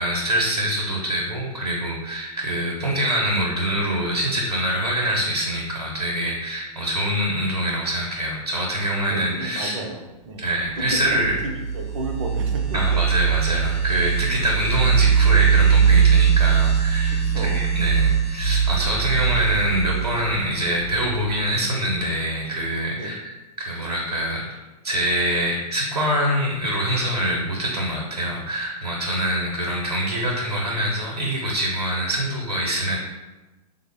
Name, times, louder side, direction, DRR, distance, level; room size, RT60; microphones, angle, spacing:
voice 1, 0.0-9.8 10.4-11.4 12.7-24.6 24.8-33.0, right 1 dB, 85° right, -2 dB, 0.7 m, -25 dB
voice 2, 9.1-10.5 10.8-13.0 14.2-14.4 17.1-17.6 22.9-23.1, right 2 dB, 50° right, 4 dB, 0.6 m, -33 dB
sound 1, 10.9-21.4, right 7 dB, 10° left, 0.8 m, -21 dB
3.5 x 2.0 x 3.5 m, 1.1 s
figure-of-eight pair, 110°, 20 cm